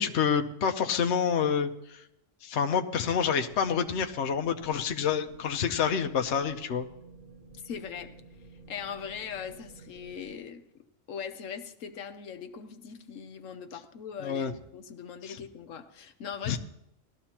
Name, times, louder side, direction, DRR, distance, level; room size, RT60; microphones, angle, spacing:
voice 1, 0.0-2.0 2.4-6.9 14.2-14.5 15.2-15.3 16.5-16.6, left 7 dB, 65° left, 5 dB, 1.0 m, -28 dB
sound 1, 3.5-10.4, right 3 dB, 45° right, 4.2 m, -52 dB
voice 2, 7.5-8.1 8.7-16.6, left 7 dB, 85° left, 8 dB, 1.2 m, -40 dB
19.0 x 13.0 x 2.9 m, 0.80 s
omnidirectional pair, 1.3 m